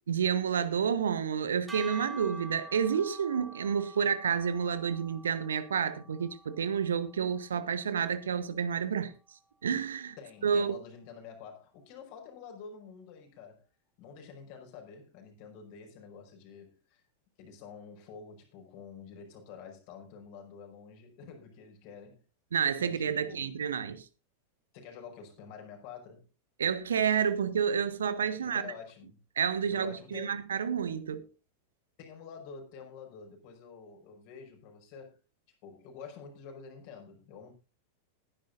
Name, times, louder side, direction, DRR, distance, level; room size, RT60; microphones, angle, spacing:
voice 1, 0.1-9.1 9.6-10.2 10.4-10.8 22.5-24.0 26.6-28.7 29.4-31.2, right 7 dB, 65° right, 1.2 m, -30 dB
sound 1, 1.7-8.0, right 3 dB, 10° right, 2.0 m, -47 dB
voice 2, 10.2-13.7 14.0-17.0 17.4-22.2 22.8-23.5 24.7-26.3 28.4-29.2 29.6-30.3 32.0-35.2 35.6-37.5, left 6 dB, 45° left, 5.3 m, -48 dB
20.5 x 10.5 x 2.6 m
figure-of-eight pair, 90°, 0 cm